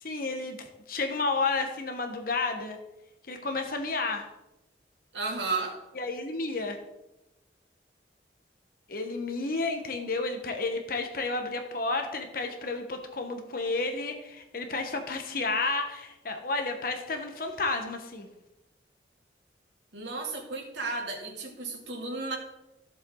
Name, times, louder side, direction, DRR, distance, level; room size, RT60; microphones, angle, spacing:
voice 1, 0.0-2.8 3.3-4.3 5.9-6.8 8.9-18.3, left 3 dB, 55° left, 5 dB, 1.2 m, -31 dB
voice 2, 5.1-5.8 19.9-22.4, right 3 dB, 80° right, 0 dB, 2.6 m, -33 dB
14.5 x 7.7 x 3.9 m, 0.94 s
head